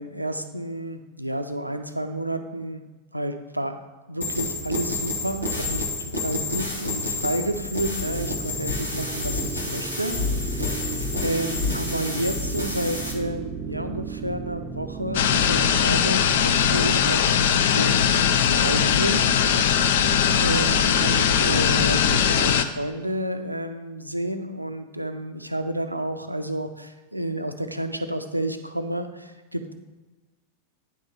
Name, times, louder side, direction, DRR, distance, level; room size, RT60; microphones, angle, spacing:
voice 1, 0.0-2.8 3.1-3.8 4.1-18.1 18.5-19.3 19.8-29.7, right 1 dB, 85° right, 7 dB, 0.5 m, -30 dB
sound 1, 4.2-13.1, left 3 dB, 85° left, 1.2 m, -29 dB
sound 2, 8.0-22.6, right 6 dB, 25° right, 0.4 m, -35 dB
sound 3, 15.1-22.6, left 8 dB, 55° left, 0.4 m, -20 dB
9.5 x 3.6 x 5.6 m, 1.3 s
figure-of-eight pair, 90°, 0 cm